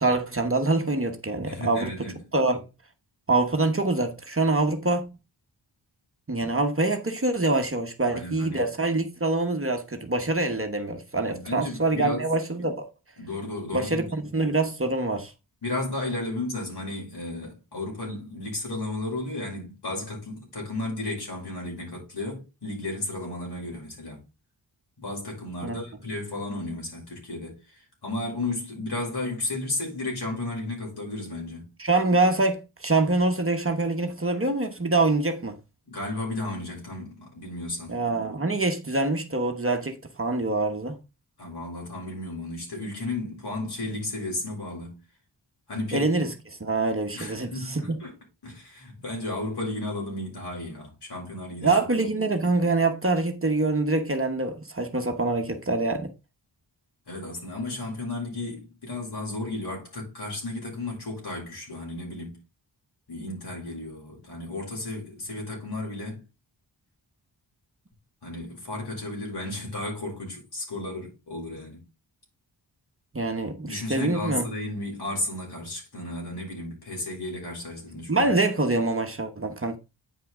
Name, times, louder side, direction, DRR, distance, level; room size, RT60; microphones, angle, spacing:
voice 1, 0.0-1.9 2.3-2.7 3.3-5.1 6.3-12.9 13.7-15.3 25.6-25.8 31.8-35.5 37.9-41.0 45.9-48.0 51.6-56.1 73.1-74.4 78.1-79.8, right 2 dB, 30° right, 1.1 m, -25 dB
voice 2, 1.5-2.2 8.1-8.6 11.3-12.3 13.2-14.1 15.6-24.2 25.0-31.7 35.9-38.0 41.4-45.0 45.7-46.1 47.1-48.1 48.4-51.7 52.0-52.1 57.1-62.4 63.1-66.2 68.2-71.8 73.6-78.3, left 2 dB, 60° left, 5.6 m, -33 dB
9.1 x 5.6 x 3.7 m
wide cardioid pair, 130°, 44 cm